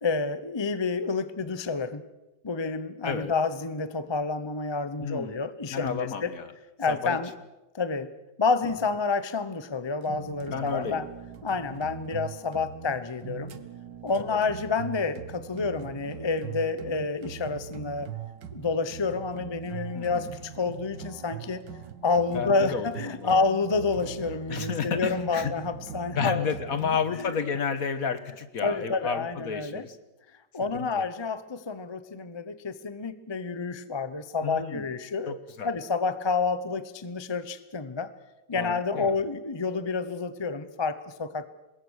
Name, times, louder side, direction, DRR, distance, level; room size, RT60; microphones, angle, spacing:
voice 1, 0.0-2.0 2.4-6.3 6.8-7.3 7.7-8.1 8.4-11.1 11.4-13.5 14.0-18.1 18.5-21.6 22.0-26.5 26.8-27.4 28.6-29.9 30.5-35.4 35.6-38.1 38.5-41.5, left 4 dB, 20° left, 13 dB, 0.7 m, -29 dB
voice 2, 5.0-5.3 5.7-6.5 6.9-7.2 10.5-11.0 14.1-14.2 19.9-20.2 22.3-23.3 24.5-25.5 26.1-30.0 30.7-30.9 34.4-34.8 35.3-35.7 38.5-39.2, left 6 dB, 55° left, 12 dB, 1.7 m, -31 dB
sound 1, 10.0-27.2, right 8 dB, 85° right, 1.9 m, -41 dB
25.5 x 21.0 x 6.5 m, 0.99 s
omnidirectional pair, 1.9 m